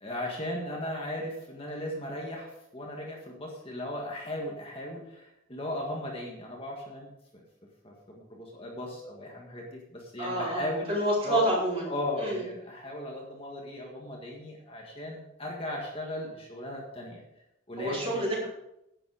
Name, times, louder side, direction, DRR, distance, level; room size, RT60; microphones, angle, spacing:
voice 1, 0.0-7.4 7.8-11.4 11.8-17.2 17.7-18.2, left 1 dB, 25° left, -1 dB, 1.7 m, -37 dB
voice 2, 10.2-11.8 12.2-12.4 17.8-18.5, right 1 dB, 30° right, -5 dB, 4.5 m, -28 dB
11.0 x 8.7 x 4.9 m, 0.85 s
head